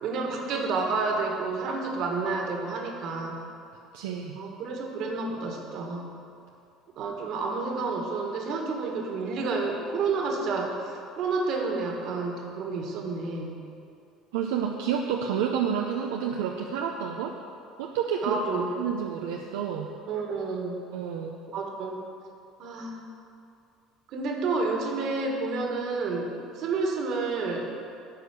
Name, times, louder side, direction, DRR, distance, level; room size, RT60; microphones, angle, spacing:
voice 1, 0.0-3.4 4.3-6.1 7.0-13.5 18.2-18.7 20.1-20.8 21.5-22.0 22.6-23.0 24.1-27.7, right 3 dB, 60° right, 1 dB, 1.8 m, -30 dB
voice 2, 3.9-4.4 14.3-17.3 17.8-18.4 18.8-19.9 20.9-21.4, right 8 dB, 85° right, 1 dB, 0.6 m, -29 dB
11.0 x 4.9 x 8.3 m, 2.5 s
supercardioid pair, 80°, 0 cm